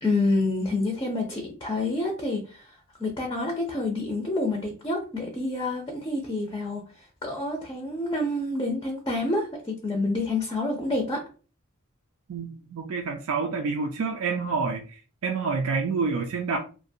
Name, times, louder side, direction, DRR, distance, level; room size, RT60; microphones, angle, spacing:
voice 1, 0.0-2.7 3.0-6.8 7.2-11.2, left 2 dB, 20° left, 0.5 m, -28 dB
voice 2, 12.3-16.6, right 4 dB, 75° right, 0.4 m, -28 dB
2.5 x 2.2 x 2.6 m
head